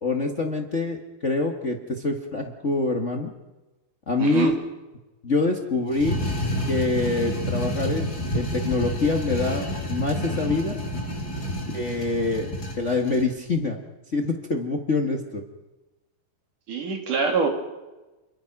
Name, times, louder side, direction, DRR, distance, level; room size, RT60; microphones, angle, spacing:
voice 1, 0.0-3.3 4.1-4.6 5.2-6.2 6.7-10.8 11.7-13.8 14.1-15.4, left 3 dB, 80° left, 2 dB, 0.6 m, -25 dB
voice 2, 4.2-4.5 16.7-17.5, right 5 dB, 55° right, 3 dB, 4.1 m, -24 dB
sound 1, 5.9-13.3, equal, 25° left, 4.4 m, -29 dB
29.0 x 23.0 x 6.0 m, 1.1 s
omnidirectional pair, 4.4 m